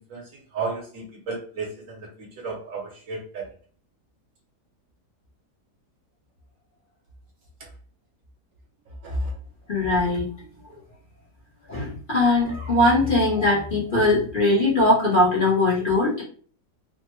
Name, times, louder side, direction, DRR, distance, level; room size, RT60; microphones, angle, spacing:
voice 1, 0.1-3.4 9.0-9.3, right 3 dB, 60° right, 0 dB, 1.1 m, -33 dB
voice 2, 9.7-10.3 11.7-16.2, left 2 dB, 40° left, -7 dB, 0.9 m, -20 dB
3.2 x 2.1 x 3.0 m, 0.43 s
omnidirectional pair, 1.7 m